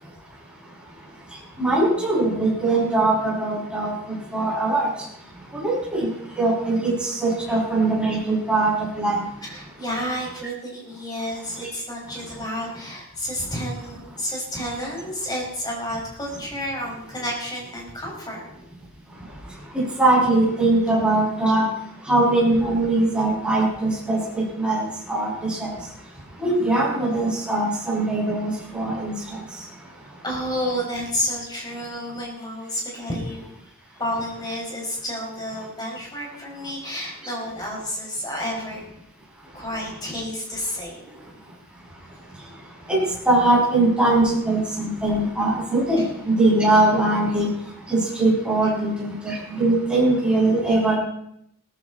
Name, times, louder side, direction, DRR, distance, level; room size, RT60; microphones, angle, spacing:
voice 1, 1.6-4.9 5.5-6.1 6.4-9.2 11.6-11.7 19.7-21.6 22.1-25.7 26.4-29.4 42.9-43.0 43.2-47.5 47.9-50.9, right 2 dB, 5° right, -6 dB, 6.8 m, -21 dB
voice 2, 9.4-18.4 25.8-25.9 30.2-33.4 34.0-38.8 39.5-41.4 46.0-46.1, equal, 20° left, -2 dB, 5.8 m, -30 dB
18.5 x 14.5 x 4.3 m, 0.74 s
head